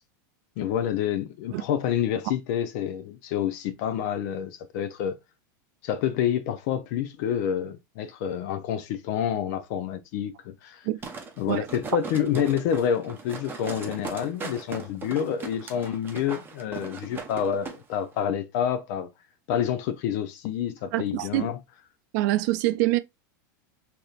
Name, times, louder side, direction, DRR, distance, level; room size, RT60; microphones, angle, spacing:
voice 1, 0.6-5.2 5.8-10.9 11.4-19.1 19.5-21.6, left 9 dB, 60° left, 0.5 m, -28 dB
sound 1, 11.0-17.8 18.1-18.2, right 5 dB, 20° right, 0.7 m, -39 dB
voice 2, 20.9-21.5 22.1-23.0, right 17 dB, 60° right, 0.4 m, -25 dB
3.4 x 2.9 x 2.4 m
supercardioid pair, 125°, 11 cm